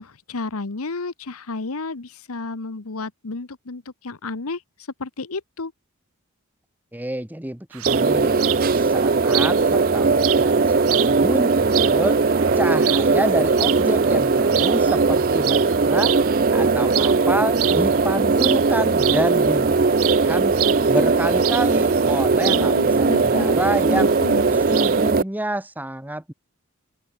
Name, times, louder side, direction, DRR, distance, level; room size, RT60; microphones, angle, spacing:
voice 1, 0.0-4.6 5.0-5.7 22.4-23.6 23.9-24.6, left 3 dB, 80° left, 1.1 m, -31 dB
voice 2, 6.9-8.4 8.7-12.2 12.6-16.1 16.5-20.0 20.2-20.6 20.9-24.1 24.5-26.3, right 1 dB, 10° right, 1.0 m, -28 dB
sound 1, 7.7-25.1, right 15 dB, 75° right, 1.0 m, -30 dB
sound 2, 7.9-25.2, right 4 dB, 40° right, 0.6 m, -19 dB
open air
head